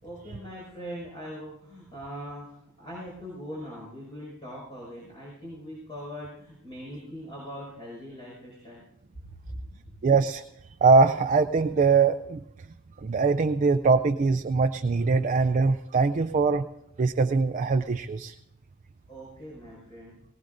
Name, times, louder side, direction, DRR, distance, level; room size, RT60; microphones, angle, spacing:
voice 1, 0.0-8.9 9.5-9.6 19.1-20.2, equal, 25° left, -5 dB, 5.5 m, -41 dB
voice 2, 10.0-10.4 10.8-12.4 13.0-16.7 17.0-18.3, right 4 dB, 35° right, 8 dB, 0.4 m, -22 dB
19.0 x 19.0 x 2.6 m, 0.82 s
head